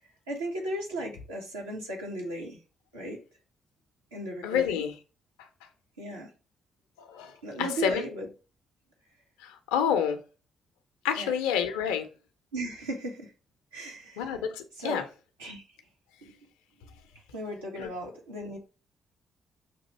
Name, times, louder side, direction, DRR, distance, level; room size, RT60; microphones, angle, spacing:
voice 1, 0.3-2.6 2.9-3.2 4.1-4.8 6.0-6.3 7.4-8.3 11.2-11.3 12.5-13.3 13.7-14.2 14.8-15.0 15.4-15.6 17.3-18.6, right 1 dB, 90° right, 0.9 m, -36 dB
voice 2, 4.4-4.9 7.1-7.3 7.6-8.1 9.4-10.2 11.0-12.1 14.2-15.0 17.8-17.9, left 8 dB, 80° left, 0.5 m, -28 dB
6.0 x 2.5 x 3.0 m
hypercardioid pair, 40°, 0 cm